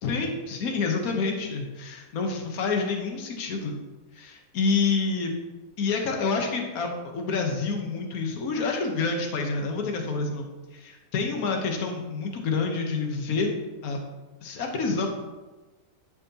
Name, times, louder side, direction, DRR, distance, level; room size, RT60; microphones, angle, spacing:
voice 1, 0.0-3.7 4.1-5.3 5.8-10.4 10.7-13.5 13.8-14.0 14.4-15.1, left 4 dB, 65° left, 2 dB, 1.5 m, -28 dB
11.0 x 6.3 x 2.9 m, 1.2 s
omnidirectional pair, 1.7 m